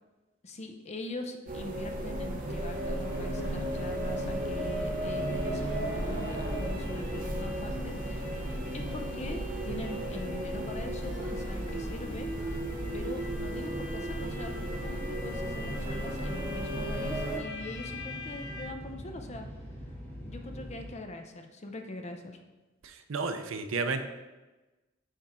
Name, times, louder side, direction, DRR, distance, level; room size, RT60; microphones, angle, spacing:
voice 1, 0.4-8.3 8.7-12.3 12.9-19.5 20.2-22.4, left 2 dB, 35° left, 5 dB, 0.6 m, -42 dB
sound 1, 1.5-17.4, right 1 dB, 45° right, 0.8 m, -34 dB
sound 2, 2.5-18.6, left 2 dB, 65° left, 1.6 m, -47 dB
sound 3, 3.2-20.9, equal, 10° left, 1.3 m, -44 dB
voice 2, 22.8-24.0, right 4 dB, 70° right, 8 dB, 0.5 m, -32 dB
6.6 x 3.6 x 4.3 m, 1.1 s
head